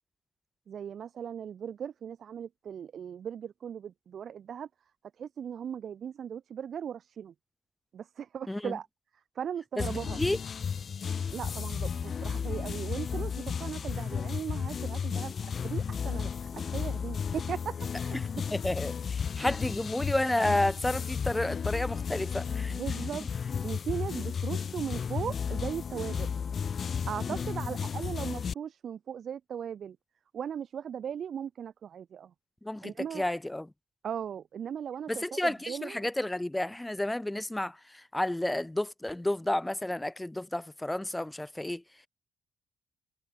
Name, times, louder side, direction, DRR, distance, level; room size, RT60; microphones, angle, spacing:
voice 1, 0.7-4.7 5.2-7.3 7.9-8.9 9.4-10.2 11.3-15.3 15.6-18.2 22.7-23.2 23.6-26.3 27.1-30.0 30.3-32.3 32.8-33.3 34.0-36.1, right 8 dB, 60° right, 7.3 m, -38 dB
voice 2, 8.5-8.8 9.8-10.4 18.1-22.8 27.3-27.5 32.6-33.7 35.1-41.8, left 1 dB, 10° left, 5.0 m, -31 dB
sound 1, 9.8-28.5, left 6 dB, 50° left, 4.6 m, -33 dB
cardioid pair, 75°, 0 cm